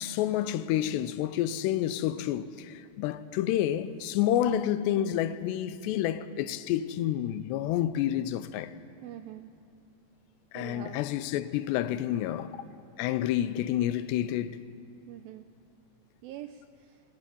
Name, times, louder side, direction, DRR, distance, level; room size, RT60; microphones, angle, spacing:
voice 1, 0.0-8.7 10.5-12.6 13.0-14.6, left 11 dB, 85° left, 2.8 m, -29 dB
voice 2, 9.0-9.5 10.5-11.0 15.1-15.5 16.2-17.0, right 12 dB, 80° right, 2.1 m, -44 dB
26.0 x 10.5 x 9.9 m
omnidirectional pair, 4.8 m